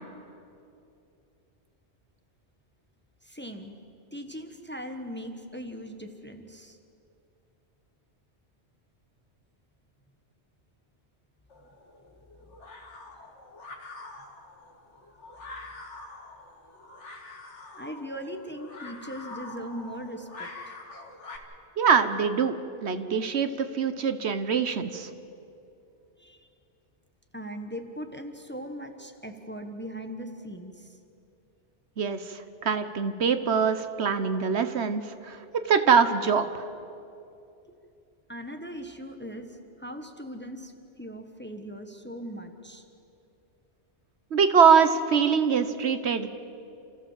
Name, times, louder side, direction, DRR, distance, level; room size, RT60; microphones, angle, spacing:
voice 1, 3.2-3.8 4.1-6.8 17.7-20.7 26.2-26.5 27.3-31.0 38.3-39.5 39.8-42.8, equal, 10° left, 5 dB, 1.2 m, -39 dB
sound 1, 11.5-21.4, left 3 dB, 85° left, 2.3 m, -45 dB
voice 2, 21.8-25.1 32.0-36.7 44.3-46.3, right 6 dB, 70° right, 10 dB, 1.2 m, -24 dB
29.5 x 14.5 x 7.4 m, 2.7 s
omnidirectional pair, 1.2 m